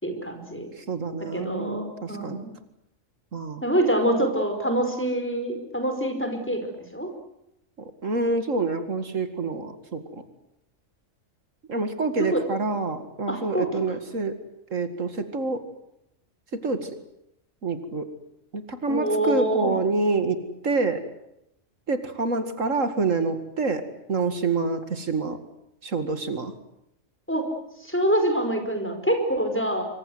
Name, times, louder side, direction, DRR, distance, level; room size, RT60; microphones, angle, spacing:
voice 1, 0.0-0.7 1.3-2.5 3.6-7.1 12.3-12.4 13.3-13.7 18.9-19.7 27.3-27.5 27.8-29.9, right 1 dB, 10° left, 4 dB, 4.9 m, -25 dB
voice 2, 0.8-2.4 3.3-3.6 7.8-10.2 11.7-14.4 14.7-15.6 16.5-17.0 17.6-18.1 18.5-20.4 20.6-21.0 21.9-23.8 24.1-25.4 25.8-26.5, right 3 dB, 70° right, 9 dB, 2.5 m, -27 dB
27.0 x 24.5 x 8.0 m, 0.81 s
omnidirectional pair, 1.4 m